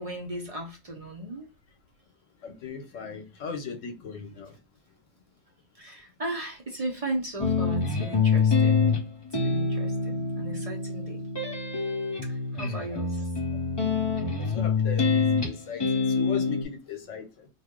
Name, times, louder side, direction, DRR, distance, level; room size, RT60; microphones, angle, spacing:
voice 1, 0.0-1.5 5.7-8.9 9.4-11.2 12.3-13.3, right 1 dB, 40° right, 0.6 m, -36 dB
voice 2, 2.4-4.6 14.4-17.5, left 7 dB, 75° left, 1.1 m, -38 dB
sound 1, 7.4-16.6, left 4 dB, 25° left, 0.6 m, -26 dB
2.7 x 2.5 x 3.6 m
omnidirectional pair, 1.3 m